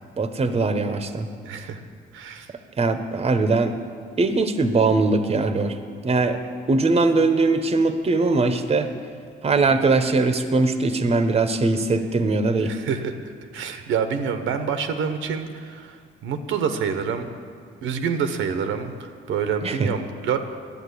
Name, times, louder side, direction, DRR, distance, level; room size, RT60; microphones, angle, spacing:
voice 1, 0.2-1.3 2.8-3.7 4.2-5.7 6.0-6.4 6.7-8.9 9.4-12.7 19.6-19.9, right 3 dB, 30° right, 8 dB, 1.0 m, -21 dB
voice 2, 1.4-1.8 2.1-2.5 12.6-16.0 16.2-17.3 17.8-20.4, right 6 dB, 85° right, 7 dB, 1.0 m, -27 dB
10.5 x 8.7 x 8.4 m, 2.3 s
cardioid pair, 90°, 20 cm